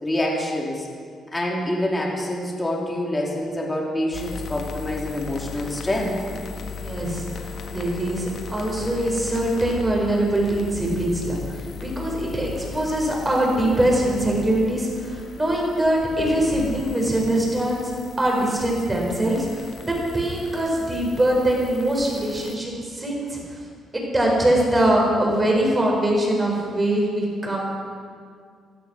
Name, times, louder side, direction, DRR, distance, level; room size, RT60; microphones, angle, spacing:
voice 1, 0.0-0.9 1.3-6.1, left 1 dB, 15° left, -2 dB, 3.1 m, -26 dB
sound 1, 4.1-22.6, left 6 dB, 60° left, 1.4 m, -37 dB
voice 2, 6.7-17.9 18.2-23.6 23.9-27.7, right 1 dB, 20° right, -1 dB, 5.0 m, -23 dB
15.5 x 12.0 x 6.3 m, 2.1 s
cardioid pair, 90°, 0 cm